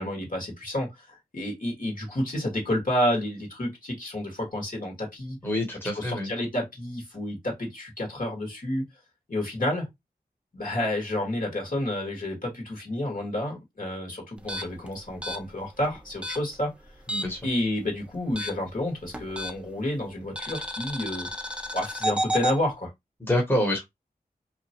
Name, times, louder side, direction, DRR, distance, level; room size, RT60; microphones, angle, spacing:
voice 1, 0.0-5.4 5.9-8.8 9.3-9.9 10.5-16.7 17.4-21.3 21.7-22.9, left 1 dB, 55° left, 1.7 m, -30 dB
voice 2, 5.4-6.3 17.1-17.4 23.2-23.8, left 1 dB, 15° left, 1.1 m, -26 dB
sound 1, 14.4-17.5 17.8-19.8 20.4-22.6, equal, 5° right, 0.5 m, -32 dB
2.9 x 2.4 x 2.8 m
wide cardioid pair, 50°, 17 cm